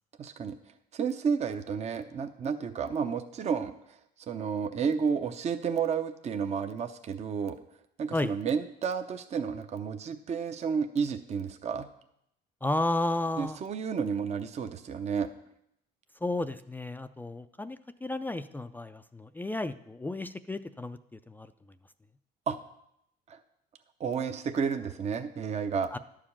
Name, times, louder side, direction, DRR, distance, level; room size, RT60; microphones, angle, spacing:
voice 1, 0.2-0.6 0.9-4.0 4.3-7.6 8.0-11.9 13.4-15.3 22.5-22.6 23.3-23.4 24.0-25.9, right 6 dB, 40° right, 8 dB, 0.7 m, -31 dB
voice 2, 12.6-13.6 16.2-21.5 25.9-26.0, left 2 dB, 10° left, 11 dB, 0.3 m, -33 dB
11.0 x 5.0 x 7.1 m, 0.76 s
cardioid pair, 110°, 17 cm